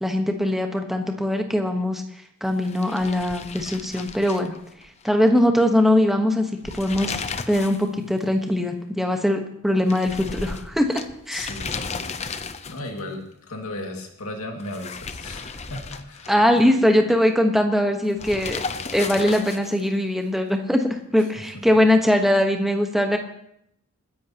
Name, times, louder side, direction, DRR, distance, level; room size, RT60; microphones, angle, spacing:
voice 1, 0.0-2.0 2.4-4.5 5.0-7.2 7.5-11.0 11.3-11.5 16.3-18.6 18.9-23.2, left 1 dB, ahead, 4 dB, 1.2 m, -21 dB
sound 1, 2.6-5.1 5.4-5.5 6.5-7.9 8.2-8.3 9.9-13.0 14.6-16.6 18.2-19.9, left 5 dB, 30° left, 0.6 m, -34 dB
voice 2, 11.3-16.5 21.4-21.6, left 2 dB, 90° left, 2 dB, 2.2 m, -36 dB
28.0 x 10.5 x 2.9 m, 0.75 s
head